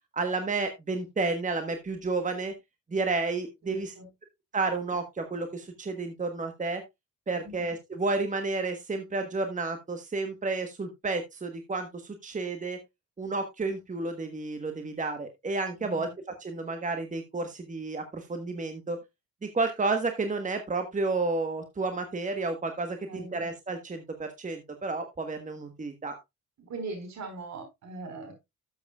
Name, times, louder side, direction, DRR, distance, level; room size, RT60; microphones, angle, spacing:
voice 1, 0.1-2.5 2.9-3.9 4.5-6.8 7.3-12.8 13.2-16.1 16.4-19.0 19.5-26.1, right 3 dB, 25° right, 7 dB, 1.3 m, -31 dB
voice 2, 3.6-4.1 7.3-7.6 15.7-16.1 23.0-23.3 26.7-28.3, right 3 dB, 65° right, 6 dB, 4.8 m, -40 dB
12.5 x 7.9 x 2.3 m, 0.21 s
cardioid pair, 90°, 30 cm